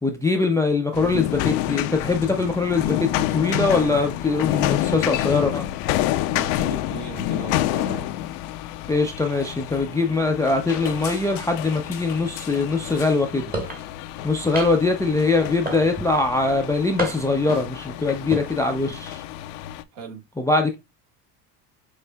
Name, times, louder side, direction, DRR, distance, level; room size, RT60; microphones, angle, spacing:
voice 1, 0.0-5.6 8.9-13.5 14.2-19.2 20.4-20.8, left 3 dB, 5° left, 0.4 m, -22 dB
sound 1, 0.9-19.8, left 14 dB, 60° left, 0.5 m, -28 dB
voice 2, 6.3-8.1 19.9-20.2, right 7 dB, 55° right, 1.4 m, -38 dB
sound 2, 13.5-13.8 14.5-15.0 15.7-16.2 17.0-17.5 18.2-18.5, right 2 dB, 20° right, 1.2 m, -30 dB
6.3 x 2.5 x 2.2 m
hypercardioid pair, 70°, 49 cm